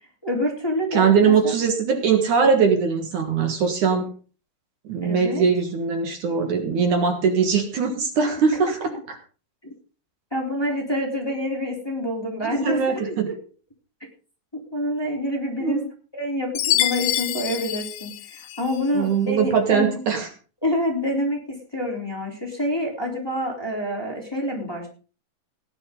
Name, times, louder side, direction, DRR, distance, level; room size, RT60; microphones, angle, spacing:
voice 1, 0.2-1.5 5.0-5.4 9.6-9.7 10.3-13.3 14.5-15.8 16.1-20.0 20.6-24.9, left 1 dB, 5° left, -1 dB, 3.1 m, -27 dB
voice 2, 0.9-4.1 4.8-8.8 9.1-9.2 12.4-13.3 15.6-15.9 18.9-20.3, right 6 dB, 65° right, 5 dB, 2.9 m, -21 dB
Chime, 16.6-18.9, left 14 dB, 70° left, 2.1 m, -26 dB
17.5 x 11.0 x 3.8 m, 0.37 s
omnidirectional pair, 4.0 m